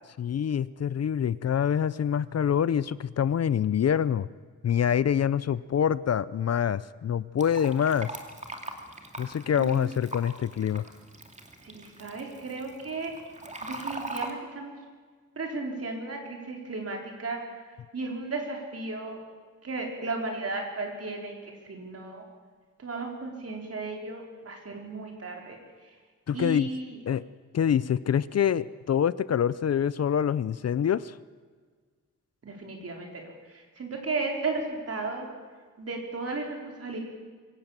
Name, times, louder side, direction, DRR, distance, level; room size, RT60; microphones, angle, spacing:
voice 1, 0.2-4.3 4.6-8.1 9.2-10.8 26.3-26.7 27.1-27.2 27.5-31.2, left 8 dB, 50° left, 18 dB, 0.5 m, -26 dB
Fill (with liquid), 7.4-14.3, right 2 dB, 20° right, 2.3 m, -41 dB
voice 2, 9.6-9.9 11.6-13.1 13.6-14.7 15.4-17.4 17.9-19.2 19.6-22.2 22.8-25.6 26.3-27.0 32.4-33.2 33.5-35.3 35.8-37.0, right 3 dB, 50° right, 1 dB, 4.5 m, -34 dB
23.5 x 17.5 x 7.4 m, 1.5 s
wide cardioid pair, 155°, 32 cm